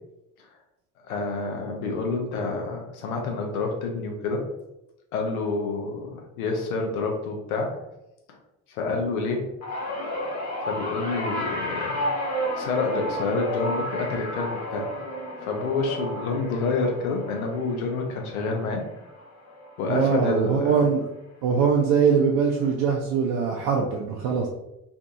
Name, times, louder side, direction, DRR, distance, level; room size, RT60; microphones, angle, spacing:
voice 1, 1.1-4.5 5.1-7.8 8.3-8.4 8.7-9.5 10.6-12.1 12.4-14.9 15.4-18.8 19.8-20.9, left 3 dB, 80° left, 2 dB, 0.6 m, -28 dB
sound 1, 9.6-20.1 20.4-20.8 21.9-22.0, equal, 40° left, 1.0 m, -32 dB
voice 2, 19.9-21.1 21.4-24.5, right 6 dB, 60° right, 0 dB, 0.5 m, -22 dB
2.6 x 2.5 x 2.4 m, 0.93 s
hypercardioid pair, 50°, 42 cm